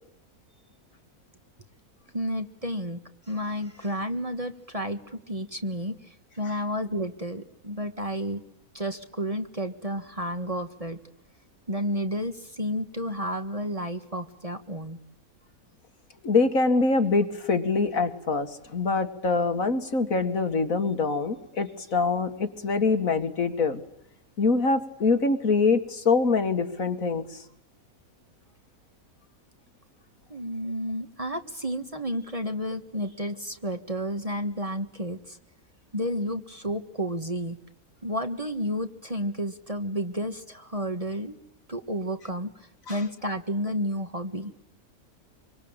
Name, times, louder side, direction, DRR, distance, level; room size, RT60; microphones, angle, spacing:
voice 1, 2.1-3.0 3.3-8.4 8.7-11.0 11.7-15.0 30.3-35.4 35.9-37.6 38.0-41.4 41.7-44.5, equal, 25° right, 7 dB, 1.7 m, -31 dB
voice 2, 16.2-23.8 24.4-27.4 42.9-43.0, left 4 dB, 65° left, 7 dB, 2.4 m, -24 dB
26.0 x 24.5 x 9.0 m, 0.78 s
omnidirectional pair, 1.6 m